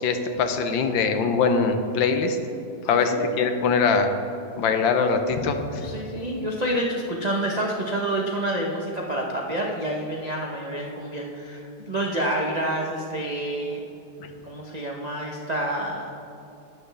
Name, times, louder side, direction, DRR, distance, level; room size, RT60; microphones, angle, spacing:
voice 1, 0.0-2.4 2.9-4.1 4.6-5.9, left 5 dB, 75° left, 6 dB, 1.5 m, -22 dB
voice 2, 2.9-3.3 5.8-13.8 14.2-16.1, right 1 dB, 75° right, -2 dB, 0.3 m, -28 dB
12.0 x 9.5 x 3.4 m, 2.7 s
omnidirectional pair, 2.2 m